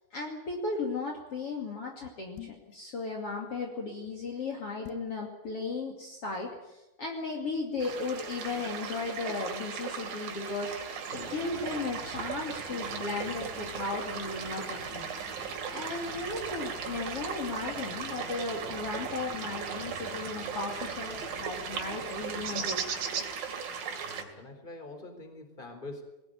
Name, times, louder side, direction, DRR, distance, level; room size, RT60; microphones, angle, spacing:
voice 1, 0.1-15.1 15.7-22.8, left 3 dB, 40° left, 0 dB, 3.3 m, -36 dB
sound 1, 2.4-2.8 4.8-5.2, left 17 dB, 90° left, 3.1 m, -42 dB
sound 2, 7.8-24.2, right 6 dB, 75° right, 4.2 m, -37 dB
sound 3, 11.1-23.3, right 1 dB, 30° right, 4.9 m, -48 dB
voice 2, 24.0-26.0, left 2 dB, 15° left, 6 dB, 3.7 m, -44 dB
22.0 x 18.5 x 9.4 m, 0.95 s
omnidirectional pair, 4.2 m